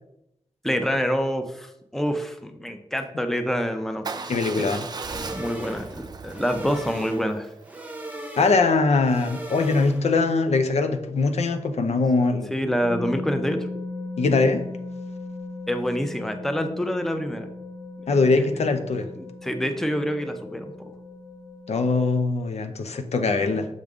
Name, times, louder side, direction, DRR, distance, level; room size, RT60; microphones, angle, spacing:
voice 1, 0.6-4.8 5.1-7.5 12.5-13.7 15.7-17.5 18.1-18.5 19.2-20.6 23.5-23.6, equal, 5° left, 6 dB, 0.6 m, -27 dB
Motorcycle / Engine starting / Idling, 4.0-8.1, right 4 dB, 40° right, 0.4 m, -37 dB
voice 2, 4.3-4.9 8.4-12.8 14.2-14.6 18.1-19.1 21.7-23.7, left 3 dB, 80° left, 7 dB, 0.7 m, -22 dB
sound 1, 4.9-10.3, right 1 dB, 15° right, 0.9 m, -39 dB
sound 2, 12.8-22.0, left 3 dB, 45° left, 1.0 m, -37 dB
6.5 x 5.2 x 3.6 m, 0.80 s
wide cardioid pair, 125°, 11 cm